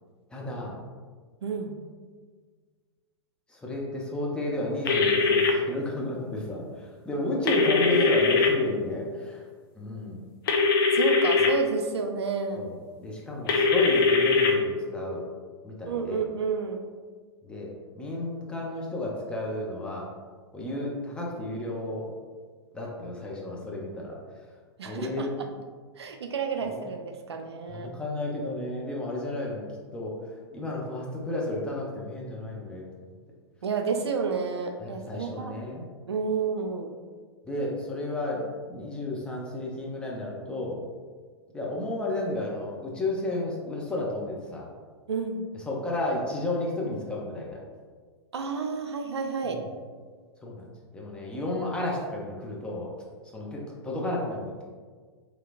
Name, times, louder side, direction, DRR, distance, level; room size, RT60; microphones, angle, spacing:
voice 1, 0.3-0.7 3.5-9.4 9.8-10.2 11.4-11.5 12.6-12.7 13.0-15.2 15.6-16.2 17.4-20.1 20.5-22.1 22.7-24.2 24.9-25.3 26.7-26.8 27.7-29.7 29.9-30.2 30.5-33.1 34.8-35.8 37.5-40.8 41.5-44.7 45.7-47.6 49.4-49.6 50.4-50.6 50.9-52.9 53.3-54.6, left 2 dB, 5° left, -4 dB, 0.5 m, -32 dB
voice 2, 1.4-1.8 7.8-8.3 10.9-12.7 15.9-16.8 24.8-25.5 26.0-27.9 33.6-35.6 36.1-36.9 45.1-45.5 48.3-49.6, right 5 dB, 75° right, 4 dB, 0.4 m, -30 dB
sound 1, 4.9-5.5 7.5-8.5 10.5-11.5 13.5-14.5, left 4 dB, 55° left, 0.5 m, -21 dB
3.0 x 2.8 x 2.4 m, 1.6 s
figure-of-eight pair, 105°, 14 cm